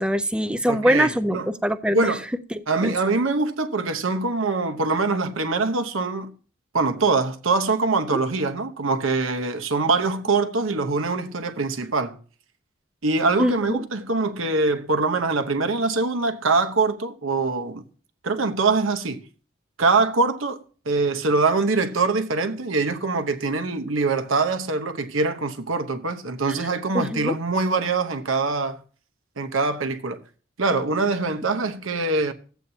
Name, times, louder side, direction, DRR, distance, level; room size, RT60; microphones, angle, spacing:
voice 1, 0.0-2.1 2.5-2.9 13.4-13.8 26.5-26.7 26.9-27.3, equal, 5° right, 0.4 m, -24 dB
voice 2, 0.7-1.5 1.9-2.2 2.7-6.3 6.7-12.2 13.0-17.8 18.2-19.2 19.8-20.6 20.8-28.8 29.4-30.2 30.6-32.3, right 3 dB, 90° right, 1.0 m, -23 dB
14.0 x 8.2 x 2.8 m
head